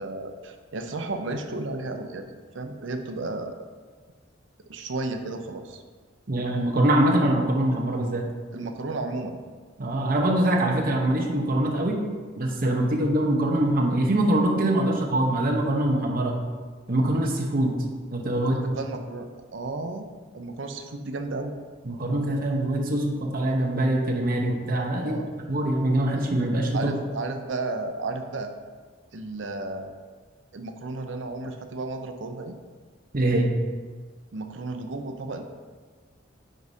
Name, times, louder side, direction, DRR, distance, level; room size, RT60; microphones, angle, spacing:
voice 1, 0.0-3.5 4.7-5.8 8.5-9.4 18.3-20.1 20.3-21.5 25.0-25.3 26.7-28.5 29.1-29.9 30.5-32.6 34.3-35.5, right 2 dB, 70° right, 6 dB, 0.6 m, -33 dB
voice 2, 6.3-8.2 9.8-12.0 12.4-16.4 16.9-17.7 18.1-18.8 21.8-25.1 25.5-26.9 33.1-33.5, right 1 dB, 50° right, 1 dB, 0.9 m, -23 dB
9.2 x 4.8 x 2.8 m, 1.5 s
head